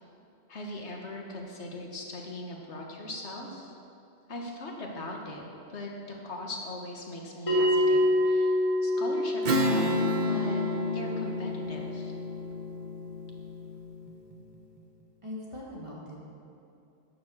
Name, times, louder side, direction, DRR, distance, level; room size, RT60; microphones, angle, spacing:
voice 1, 0.5-3.8 4.3-5.4 5.7-9.9 10.2-10.6 10.9-12.1, left 1 dB, 90° left, 0 dB, 1.7 m, -40 dB
Bell, 7.5-12.5, left 1 dB, 30° left, 3.0 m, -27 dB
Strum, 9.4-14.3, left 1 dB, 45° right, 0.9 m, -30 dB
voice 2, 15.2-16.2, left 1 dB, 25° right, -5 dB, 2.3 m, -40 dB
11.0 x 7.3 x 7.3 m, 2.6 s
omnidirectional pair, 1.1 m